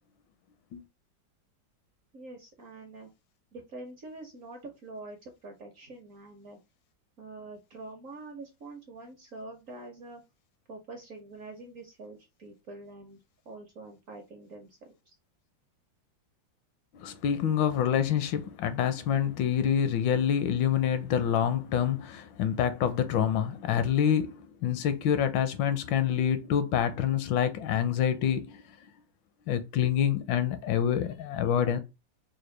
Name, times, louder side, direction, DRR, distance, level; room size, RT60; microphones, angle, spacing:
voice 1, 2.1-3.1 3.5-6.6 7.2-10.2 10.7-13.2 13.5-14.9, right 2 dB, 60° right, 0.9 m, -45 dB
voice 2, 16.9-28.6 29.5-31.8, left 9 dB, 80° left, 1.3 m, -27 dB
4.8 x 2.2 x 3.2 m
omnidirectional pair, 2.1 m